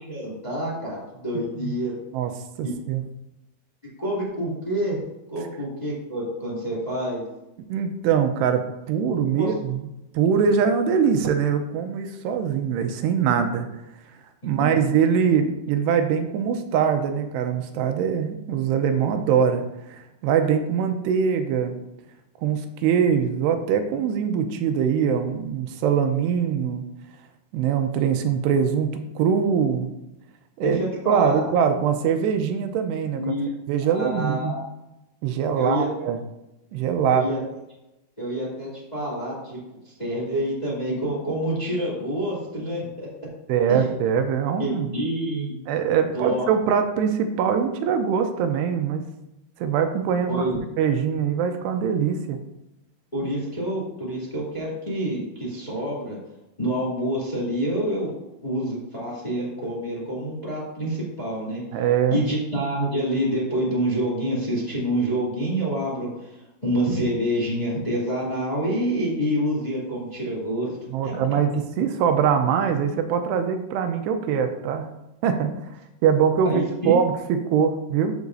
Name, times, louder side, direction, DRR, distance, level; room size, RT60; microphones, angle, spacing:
voice 1, 0.0-2.0 2.6-2.7 4.0-5.0 5.3-7.2 9.4-9.5 30.6-31.5 33.1-33.5 33.8-34.6 35.5-36.1 37.0-37.4 38.2-39.6 39.8-43.1 43.7-43.9 44.6-45.6 46.1-46.5 50.3-50.6 53.1-56.2 56.6-58.1 58.4-61.6 62.1-71.2 76.4-76.9, equal, 15° left, -5 dB, 2.0 m, -27 dB
voice 2, 2.6-3.0 7.7-8.6 8.9-9.8 10.1-13.7 14.4-19.6 19.9-21.7 22.4-26.8 27.5-29.9 30.6-30.8 31.1-33.3 33.7-34.5 35.2-36.2 36.7-37.2 43.5-44.9 45.7-49.0 49.6-50.3 50.8-52.4 61.7-62.2 70.9-74.9 75.2-75.5 76.0-78.1, right 7 dB, 90° right, 6 dB, 2.8 m, -22 dB
13.0 x 6.2 x 2.7 m, 0.91 s
omnidirectional pair, 4.9 m